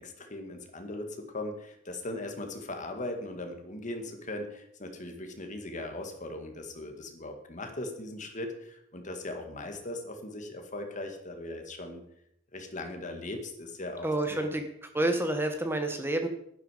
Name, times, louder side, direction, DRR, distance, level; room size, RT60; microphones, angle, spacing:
voice 1, 0.0-12.1 12.5-14.5, left 2 dB, 40° left, 5 dB, 1.9 m, -39 dB
voice 2, 14.0-14.7 14.9-16.3, right 1 dB, 10° right, 6 dB, 1.0 m, -28 dB
11.5 x 10.5 x 5.0 m, 0.74 s
head